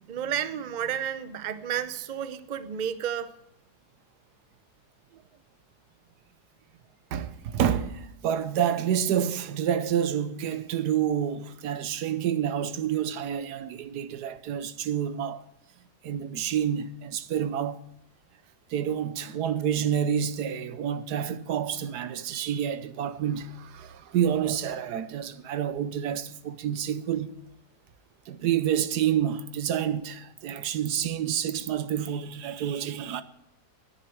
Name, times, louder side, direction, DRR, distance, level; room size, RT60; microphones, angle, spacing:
voice 1, 0.1-3.3, right 9 dB, 50° right, 0.5 m, -31 dB
voice 2, 7.1-15.4 16.0-17.8 18.7-27.4 28.3-33.2, right 9 dB, 75° right, 1.3 m, -28 dB
10.0 x 10.0 x 9.0 m
omnidirectional pair, 1.7 m